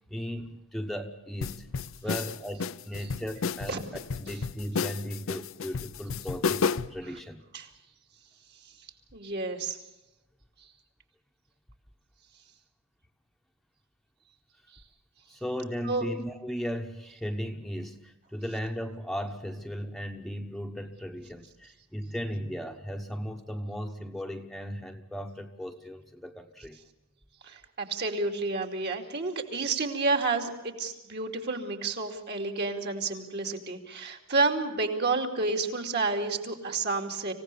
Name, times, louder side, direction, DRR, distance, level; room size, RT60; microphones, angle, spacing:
voice 1, 0.1-1.7 2.0-7.4 15.3-26.8, equal, ahead, 4 dB, 1.1 m, -36 dB
sound 1, 1.4-7.0, left 5 dB, 70° left, 0.6 m, -32 dB
voice 2, 9.1-9.8 10.6-10.7 15.8-16.0 27.4-37.3, right 3 dB, 55° right, 3 dB, 2.7 m, -30 dB
26.0 x 16.5 x 6.8 m, 1.0 s
head